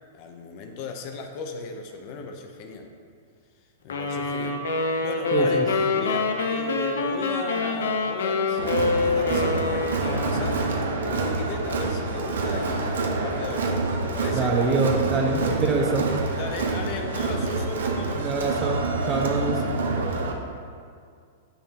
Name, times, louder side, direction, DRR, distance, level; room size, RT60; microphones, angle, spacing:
voice 1, 0.1-2.9 3.8-4.6 5.0-5.6 5.9-10.7 10.9-13.7 14.0-14.5 16.3-18.3 19.3-19.5, left 3 dB, 45° left, 3 dB, 0.8 m, -36 dB
sound 1, 3.9-11.1, left 3 dB, 90° left, 0.8 m, -26 dB
voice 2, 5.3-5.6 14.3-16.1 18.2-19.6, right 3 dB, 25° right, 1 dB, 1.1 m, -25 dB
Crowd, 8.6-20.3, right 3 dB, 90° right, 0.9 m, -27 dB
9.4 x 6.7 x 2.9 m, 2.2 s
hypercardioid pair, 140°, 0 cm